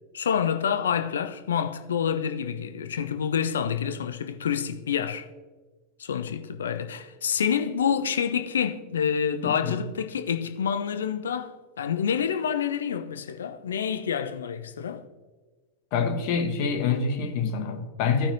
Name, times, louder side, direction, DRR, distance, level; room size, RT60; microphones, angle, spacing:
voice 1, 0.1-5.3 6.0-15.0, left 7 dB, 65° left, 0.6 m, -28 dB
voice 2, 9.4-9.8 15.9-18.3, left 5 dB, 45° left, 1.2 m, -26 dB
16.0 x 5.7 x 2.8 m
figure-of-eight pair, 90°, 0 cm